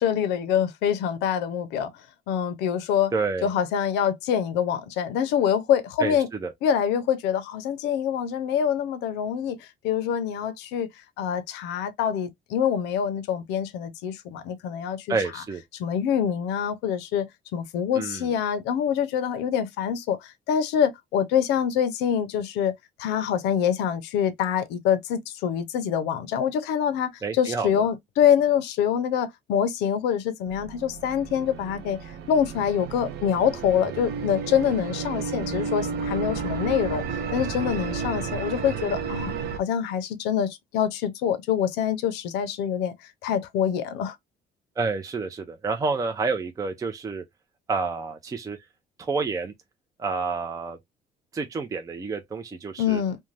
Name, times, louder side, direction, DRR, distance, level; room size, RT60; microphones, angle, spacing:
voice 1, 0.0-1.9 2.3-3.1 3.4-6.3 6.6-10.9 11.2-15.4 15.7-17.3 17.5-22.7 23.0-32.0 32.3-39.3 39.6-42.9 43.2-44.2 52.8-53.2, left 8 dB, 90° left, 0.6 m, -25 dB
voice 2, 3.1-3.5 6.0-6.2 6.4-6.5 15.1-15.6 18.0-18.3 27.2-27.8 44.8-47.2 47.7-48.6 49.0-49.5 50.0-50.8 51.3-53.0, right 4 dB, 20° right, 0.5 m, -29 dB
sound 1, 30.5-39.6, right 5 dB, 75° right, 0.6 m, -32 dB
2.5 x 2.2 x 3.1 m
cardioid pair, 110°, 17 cm